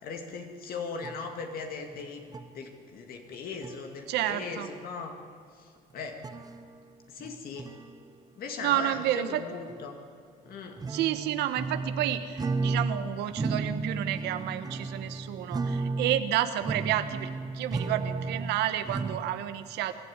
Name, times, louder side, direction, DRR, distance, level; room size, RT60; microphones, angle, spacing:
voice 1, 0.0-2.2 2.5-5.1 5.5-6.2 7.1-7.7 8.4-10.0 10.5-10.8, left 4 dB, 60° left, 4 dB, 2.2 m, -39 dB
sound 1, 1.0-1.2 1.9-2.0 2.3-2.5 3.3-3.4 3.6-3.8 6.0-6.8 7.2-7.9 8.9-9.0 9.7-9.8 10.5-13.0 13.3-19.2, right 3 dB, 20° right, 1.3 m, -33 dB
voice 2, 4.1-4.7 8.6-9.4 10.9-19.9, right 12 dB, 85° right, 10 dB, 1.2 m, -30 dB
24.0 x 12.0 x 9.5 m, 2.4 s
cardioid pair, 110°, 17 cm